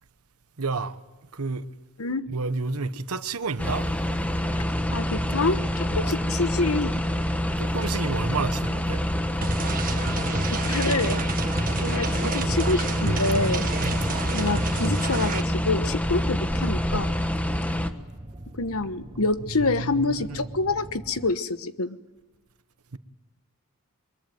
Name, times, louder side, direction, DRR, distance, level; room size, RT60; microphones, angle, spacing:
voice 1, 0.6-1.0 1.3-1.6 2.3-3.9 5.9-6.1 7.6-9.0 13.8-14.1 19.6-20.4 22.9-23.0, right 4 dB, 80° right, 1.1 m, -30 dB
sound 1, 3.6-17.9, left 1 dB, 5° left, 1.2 m, -27 dB
sound 2, 4.4-21.3, right 1 dB, 25° right, 1.0 m, -42 dB
voice 2, 4.9-6.9 10.0-10.1 10.5-11.2 11.8-13.7 14.3-17.1 18.6-22.0, left 3 dB, 75° left, 1.2 m, -27 dB
sound 3, 9.4-15.4, right 3 dB, 40° right, 1.6 m, -30 dB
23.0 x 22.0 x 9.2 m
head